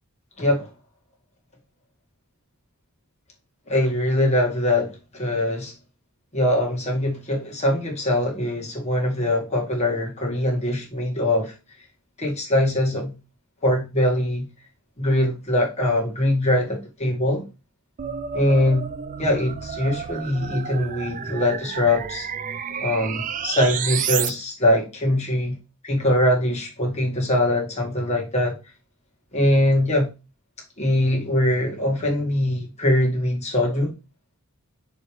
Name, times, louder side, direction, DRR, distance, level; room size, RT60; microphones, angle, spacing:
voice 1, 0.4-0.7 3.7-5.7 6.3-11.5 12.2-13.2 13.6-14.5 15.0-17.5 18.3-18.9 19.2-22.3 22.8-28.6 29.3-30.1 30.8-33.9, left 1 dB, 30° left, 2.1 m, -22 dB
sound 1, 18.0-24.3, right 8 dB, 35° right, 0.4 m, -31 dB
6.5 x 3.5 x 4.7 m
head